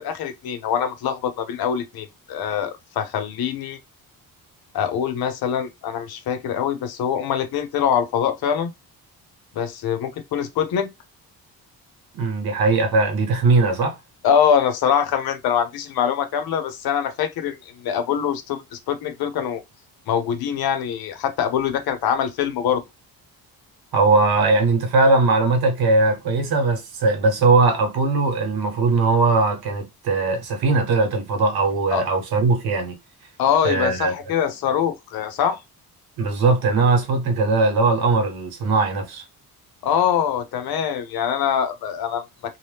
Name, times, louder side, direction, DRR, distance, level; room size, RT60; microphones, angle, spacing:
voice 1, 0.0-3.8 4.7-8.7 9.5-10.9 14.2-19.6 20.1-22.8 31.9-32.0 33.4-35.6 39.8-42.6, left 8 dB, 75° left, 0.7 m, -23 dB
voice 2, 12.1-14.0 23.9-33.0 33.6-34.1 36.2-39.2, right 3 dB, 75° right, 1.1 m, -19 dB
2.8 x 2.1 x 3.3 m
cardioid pair, 160°, 37 cm